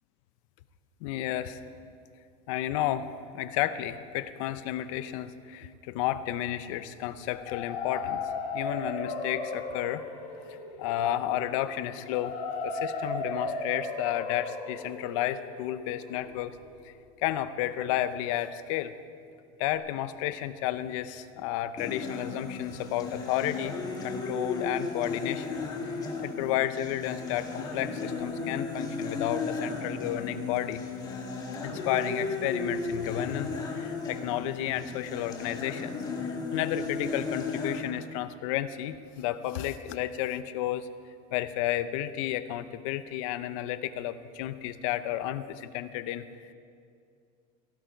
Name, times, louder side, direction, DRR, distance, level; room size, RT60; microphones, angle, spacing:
voice 1, 1.0-1.6 2.5-3.1 3.3-10.0 10.5-16.6 16.8-16.9 17.2-18.9 19.6-25.6 26.2-30.8 31.6-40.9 41.3-46.2, left 12 dB, 80° left, 12 dB, 0.8 m, -32 dB
sound 1, 7.2-17.0, left 3 dB, 55° left, 2.2 m, -36 dB
sound 2, 21.8-37.8, left 4 dB, 25° left, 2.1 m, -35 dB
18.0 x 15.5 x 4.6 m, 2.4 s
cardioid pair, 150°, 17 cm